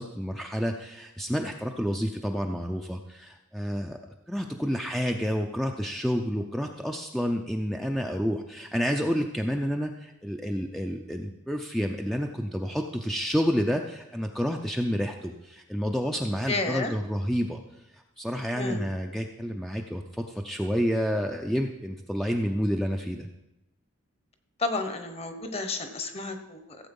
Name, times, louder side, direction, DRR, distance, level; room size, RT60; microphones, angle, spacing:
voice 1, 0.0-4.0 4.3-17.6 17.9-23.3, equal, ahead, 3 dB, 0.5 m, -29 dB
voice 2, 16.5-16.9 18.5-18.8 24.6-26.8, left 3 dB, 30° left, 8 dB, 1.1 m, -31 dB
15.5 x 7.9 x 5.4 m, 0.93 s
head